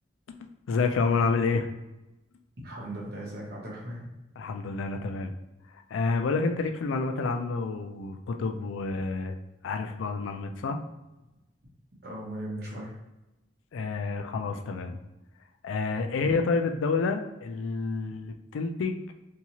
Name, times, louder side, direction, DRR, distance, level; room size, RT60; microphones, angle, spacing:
voice 1, 0.7-1.7 4.4-5.3 5.9-9.4 9.6-10.8 13.7-15.0 15.6-19.0, left 4 dB, 80° left, 6 dB, 0.3 m, -29 dB
voice 2, 2.6-4.1 12.0-13.0, right 1 dB, 55° right, -4 dB, 0.9 m, -38 dB
2.7 x 2.3 x 2.9 m, 0.97 s
head